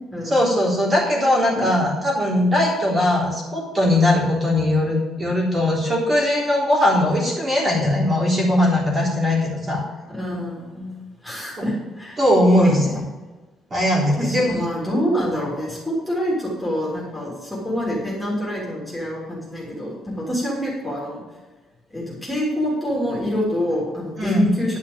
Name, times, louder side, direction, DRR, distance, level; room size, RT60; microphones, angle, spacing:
voice 1, 0.3-9.8 11.6-11.7 12.2-12.8 13.7-14.6 24.2-24.5, left 1 dB, 25° right, -4 dB, 3.6 m, -19 dB
voice 2, 10.1-10.9 11.2-12.2 12.5-13.0 14.2-21.2 21.9-24.8, equal, 5° left, -6 dB, 3.2 m, -26 dB
11.5 x 5.8 x 7.4 m, 1.2 s
cardioid pair, 160°, 0 cm